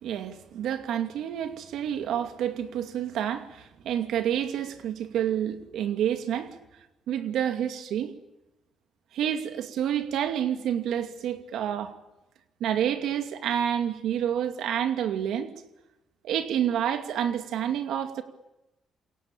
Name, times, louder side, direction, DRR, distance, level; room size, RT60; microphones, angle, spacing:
voice 1, 0.0-6.5 7.1-8.1 9.1-11.9 12.6-15.5 16.2-18.2, right 9 dB, 80° right, 7 dB, 2.5 m, -28 dB
28.0 x 22.5 x 8.8 m, 0.96 s
cardioid pair, 100°, 0 cm